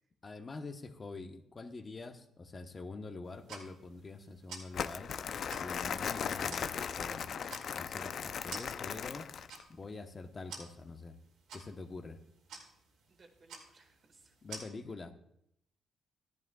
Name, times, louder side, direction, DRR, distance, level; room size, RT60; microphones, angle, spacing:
voice 1, 0.2-5.1 5.6-7.3 7.7-9.3 9.7-11.2 11.5-12.2 14.4-15.1, left 3 dB, 30° left, 7 dB, 0.9 m, -45 dB
sound 1, 3.2-14.6, right 4 dB, 90° right, 2.4 m, -52 dB
Crumpling crinkling, 4.7-9.6, left 7 dB, 60° left, 0.4 m, -37 dB
voice 2, 13.1-14.4, right 3 dB, 40° right, 4 dB, 1.8 m, -63 dB
13.5 x 10.5 x 2.3 m, 0.76 s
cardioid pair, 90°, 0 cm